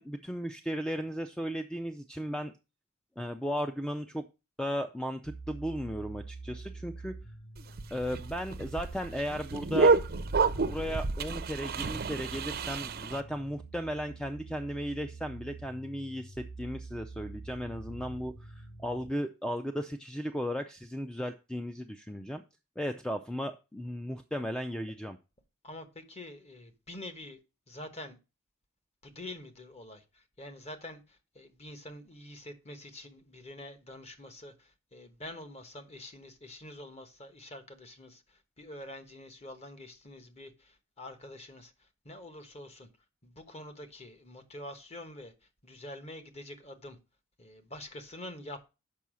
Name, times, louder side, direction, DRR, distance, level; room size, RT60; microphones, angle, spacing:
voice 1, 0.0-2.5 3.2-4.2 4.6-7.1 7.9-10.0 10.6-22.4 22.8-25.2, equal, 5° left, 0.4 m, -35 dB
sound 1, 5.2-19.1, right 3 dB, 80° left, 2.7 m, -46 dB
sound 2, 7.6-13.2, right 4 dB, 45° right, 0.6 m, -29 dB
voice 2, 25.6-27.4 27.7-28.2 29.0-42.9 43.2-45.3 45.6-47.0 47.4-48.7, left 1 dB, 30° left, 1.1 m, -46 dB
7.0 x 5.5 x 6.1 m
head